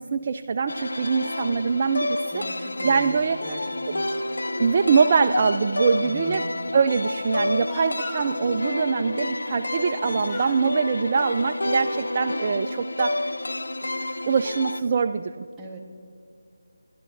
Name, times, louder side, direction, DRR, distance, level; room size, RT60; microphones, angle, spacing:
voice 1, 0.0-3.4 3.9-4.0 4.6-6.5 6.7-13.3 14.3-15.5, right 5 dB, 35° right, 6 dB, 0.3 m, -23 dB
sound 1, 0.7-14.8, left 2 dB, 80° left, 0.5 m, -29 dB
voice 2, 2.3-3.6 3.9-4.0 6.0-6.5 15.6-15.8, right 1 dB, 5° right, -5 dB, 1.2 m, -39 dB
Speech, 7.6-8.4 9.8-10.0 10.3-10.7 11.4-12.2, left 2 dB, 15° left, 0.8 m, -41 dB
26.5 x 11.0 x 2.6 m, 2.4 s
figure-of-eight pair, 165°, 0 cm